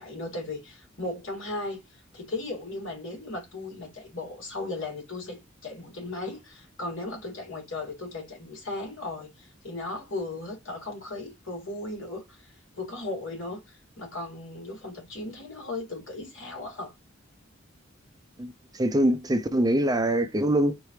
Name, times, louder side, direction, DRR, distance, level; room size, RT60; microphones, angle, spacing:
voice 1, 0.0-16.9, left 2 dB, 70° left, 3.3 m, -37 dB
voice 2, 18.4-20.7, right 1 dB, 20° right, 0.6 m, -24 dB
4.8 x 3.4 x 3.2 m
head